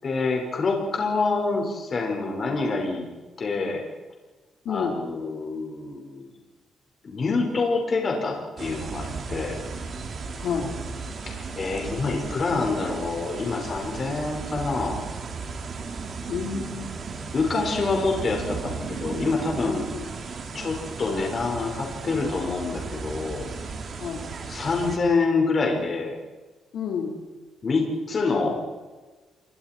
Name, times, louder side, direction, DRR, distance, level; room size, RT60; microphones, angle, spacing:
voice 1, 0.0-3.1 3.4-3.8 4.7-6.2 7.0-9.6 11.3-15.0 17.3-19.8 20.5-23.5 24.5-26.2 27.6-28.6, left 3 dB, 40° left, 1 dB, 5.1 m, -26 dB
voice 2, 4.6-5.0 10.3-10.7 16.3-17.0 19.9-20.1 24.0-24.2 26.7-27.1, left 6 dB, 75° left, 0 dB, 4.2 m, -30 dB
sound 1, 8.6-25.0, right 4 dB, 45° right, 3.0 m, -35 dB
29.0 x 24.0 x 4.5 m, 1.3 s
cardioid pair, 135°, 0 cm